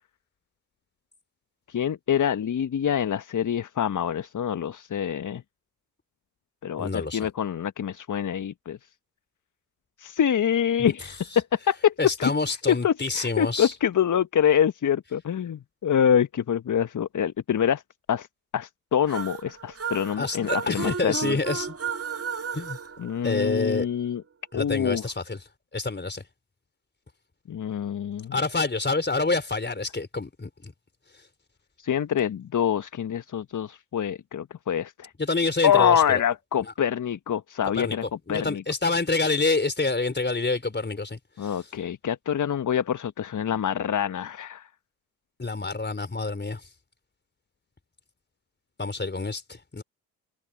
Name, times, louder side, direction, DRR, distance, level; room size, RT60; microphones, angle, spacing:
voice 1, 1.7-5.4 6.6-8.8 10.0-12.3 12.7-17.8 18.1-18.3 18.5-21.4 23.0-24.2 24.5-25.0 27.5-28.4 31.8-35.1 35.6-38.0 38.3-38.6 41.4-44.7, left 8 dB, 35° left, 1.5 m, -25 dB
voice 2, 6.8-7.2 10.8-10.9 12.0-13.7 20.2-21.7 22.5-22.8 23.2-23.9 24.5-25.4 25.7-26.2 28.3-30.7 35.2-36.2 37.7-41.5 45.4-46.6 48.8-49.8, left 3 dB, 20° left, 4.6 m, -27 dB
sound 1, 19.1-23.8, right 6 dB, 30° right, 2.7 m, -34 dB
figure-of-eight pair, 45°, 49 cm